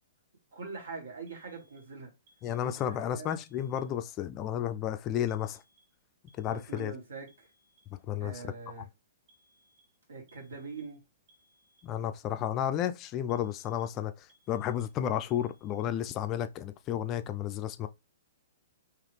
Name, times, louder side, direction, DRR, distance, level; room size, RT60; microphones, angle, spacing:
voice 1, 0.5-2.1 2.6-3.3 6.4-7.5 8.2-8.9 10.1-11.0, right 4 dB, 70° right, 1.8 m, -43 dB
sound 1, 1.3-1.9 2.3-2.9 3.3-3.9 5.3-6.0 6.3-6.9 7.3-7.9 9.3-9.9 10.3-11.0 11.3-12.0 13.3-14.0 14.3-15.0 15.3-16.0, right 1 dB, 50° right, 1.2 m, -68 dB
voice 2, 2.4-5.6 6.4-6.9 8.1-8.5 11.8-17.9, left 10 dB, 30° left, 0.4 m, -32 dB
3.9 x 2.9 x 3.2 m
figure-of-eight pair, 115°, 0 cm